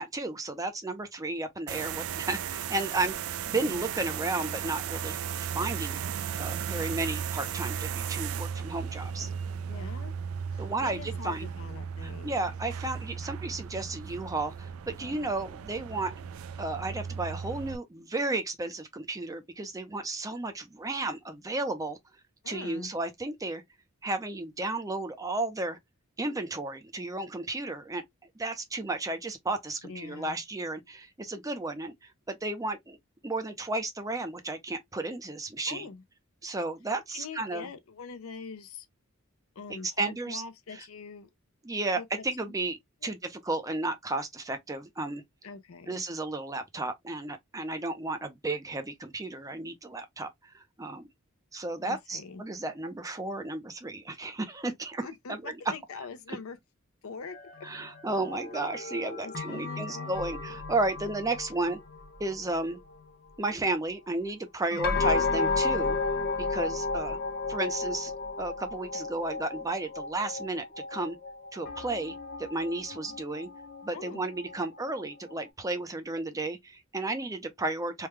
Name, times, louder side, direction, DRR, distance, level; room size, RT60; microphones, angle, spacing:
voice 1, 0.0-6.0 6.4-9.3 10.6-11.5 12.0-16.1 16.6-22.0 22.5-23.6 24.0-25.8 26.2-28.0 28.4-33.0 33.2-35.9 36.4-37.7 40.0-40.4 41.6-45.2 45.9-50.3 50.5-51.1 51.5-55.6 57.6-61.8 62.2-62.8 63.4-66.0 66.4-67.2 67.5-68.1 68.4-71.2 71.5-73.5 73.8-78.1, right 2 dB, 15° right, 0.5 m, -33 dB
sound 1, 1.7-17.8, right 7 dB, 75° right, 0.3 m, -36 dB
voice 2, 9.7-10.1 10.5-12.4 22.4-22.9 29.8-30.4 35.7-36.0 37.1-38.9 39.6-41.3 42.0-42.2 43.0-43.1 45.4-46.0 51.8-52.4 55.0-56.6 57.0-57.4 59.2-60.2 73.9-74.2, left 4 dB, 75° left, 0.6 m, -43 dB
sound 2, 57.3-62.9 64.7-75.5, left 3 dB, 45° left, 0.8 m, -34 dB
3.4 x 2.2 x 3.2 m
head